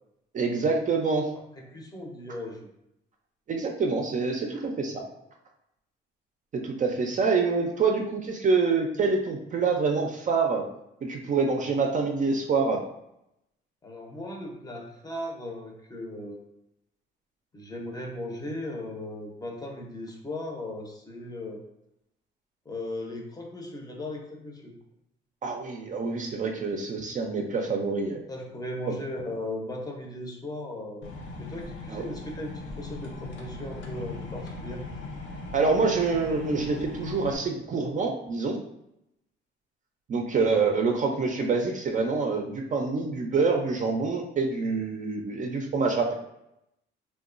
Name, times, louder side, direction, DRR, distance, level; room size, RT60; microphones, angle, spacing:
voice 1, 0.3-1.3 3.5-5.0 6.5-10.7 11.0-12.8 25.4-28.2 31.9-32.1 35.5-38.6 40.1-46.1, right 4 dB, 40° right, 2 dB, 0.4 m, -26 dB
voice 2, 1.6-2.7 13.8-16.4 17.5-21.6 22.7-24.7 28.3-31.1 31.4-34.8, left 1 dB, 20° left, 0 dB, 0.6 m, -37 dB
sound 1, 31.0-37.4, left 3 dB, 70° left, 0.6 m, -39 dB
2.8 x 2.2 x 2.5 m, 0.81 s
cardioid pair, 90°, 20 cm